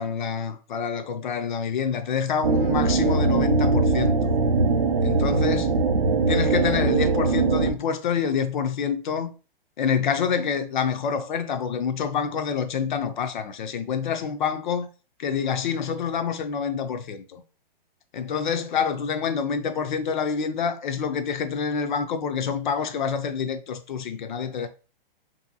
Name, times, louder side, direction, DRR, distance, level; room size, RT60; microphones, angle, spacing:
voice 1, 0.0-4.3 5.0-5.7 6.3-9.3 9.8-14.9 15.2-17.4 18.1-24.7, left 6 dB, 55° left, 0.4 m, -27 dB
sound 1, 2.4-7.7, right 3 dB, 40° right, 0.4 m, -21 dB
2.7 x 2.6 x 2.6 m
hypercardioid pair, 160°, 29 cm